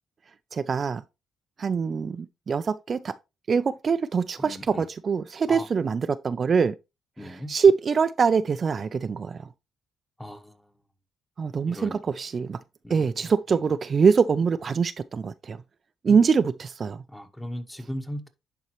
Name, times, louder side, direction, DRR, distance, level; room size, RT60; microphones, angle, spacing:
voice 1, 0.5-1.0 1.6-3.2 3.5-6.7 7.5-9.5 11.4-12.6 12.9-15.6 16.0-17.0, right 5 dB, 45° right, 0.4 m, -23 dB
voice 2, 4.4-4.9 5.5-5.7 7.2-7.5 10.2-10.7 11.7-12.0 12.8-13.6 16.0-16.2 17.1-18.3, equal, 5° left, 1.1 m, -38 dB
10.5 x 4.2 x 3.0 m
cardioid pair, 90°, 0 cm